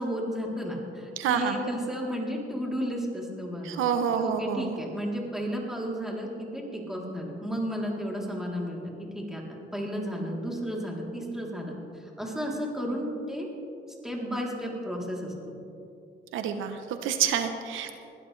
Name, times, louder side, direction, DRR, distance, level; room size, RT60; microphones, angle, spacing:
voice 1, 0.0-3.8 4.1-8.8 9.1-9.4 9.7-13.5 14.0-15.5, equal, ahead, -3 dB, 3.2 m, -33 dB
voice 2, 1.2-1.6 3.6-4.7 16.3-17.9, right 8 dB, 85° right, 7 dB, 0.9 m, -28 dB
20.0 x 13.0 x 3.3 m, 2.7 s
cardioid pair, 90°, 20 cm